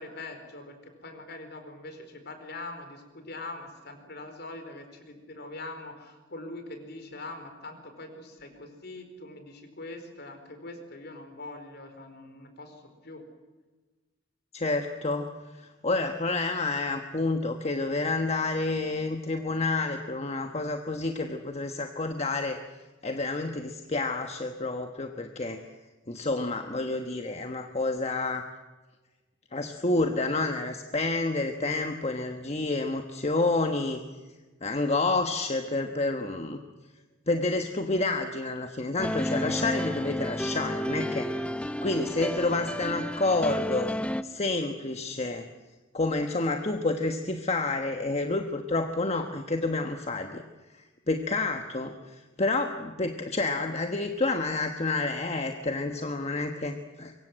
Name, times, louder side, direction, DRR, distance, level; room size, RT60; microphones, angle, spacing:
voice 1, 0.0-13.2, left 2 dB, 55° left, 7 dB, 4.7 m, -43 dB
voice 2, 14.5-22.6 23.0-25.6 26.1-28.5 29.5-34.0 34.6-36.6 37.3-41.3 41.8-43.9 44.2-45.5 45.9-50.4 50.7-57.1, left 2 dB, 35° left, 5 dB, 1.2 m, -29 dB
sound 1, 39.0-44.2, equal, 5° left, 0.7 m, -31 dB
24.5 x 23.0 x 7.9 m, 1.2 s
head